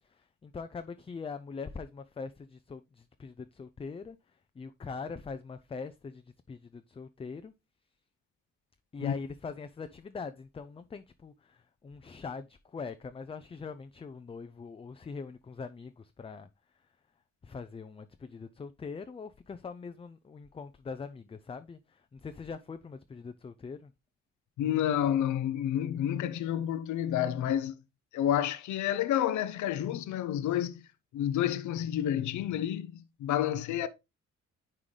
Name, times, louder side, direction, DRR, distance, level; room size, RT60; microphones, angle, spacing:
voice 1, 0.0-7.5 8.9-16.5 17.4-23.9, left 5 dB, 20° left, 0.4 m, -42 dB
voice 2, 24.6-27.8 28.1-30.8 31.1-33.9, left 11 dB, 75° left, 0.6 m, -29 dB
9.8 x 3.8 x 3.2 m
cardioid pair, 90°, 30 cm